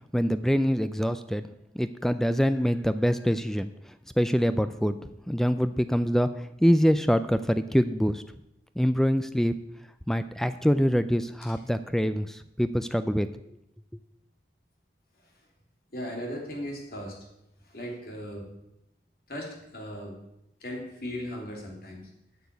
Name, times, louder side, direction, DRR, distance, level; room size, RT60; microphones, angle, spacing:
voice 1, 0.1-1.4 1.8-3.7 4.2-5.0 5.3-8.2 8.8-9.5 10.1-13.3, equal, ahead, 12 dB, 0.3 m, -25 dB
voice 2, 15.9-17.2 17.6-18.5 19.3-20.1 20.6-22.1, equal, 55° left, 0 dB, 3.2 m, -37 dB
9.3 x 6.8 x 8.2 m, 0.85 s
head